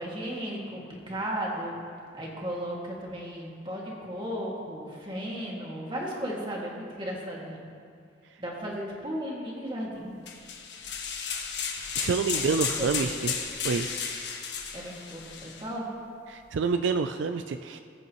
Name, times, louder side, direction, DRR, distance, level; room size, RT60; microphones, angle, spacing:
voice 1, 0.0-1.8 2.1-7.7 8.4-10.1 12.3-12.9 14.7-15.9, equal, 25° right, -3 dB, 1.9 m, -35 dB
sound 1, 10.3-15.6, left 6 dB, 70° left, 1.3 m, -33 dB
voice 2, 12.0-13.3 13.6-13.9 16.3-17.8, right 5 dB, 75° right, 8 dB, 0.4 m, -27 dB
20.0 x 8.2 x 3.0 m, 2.3 s
head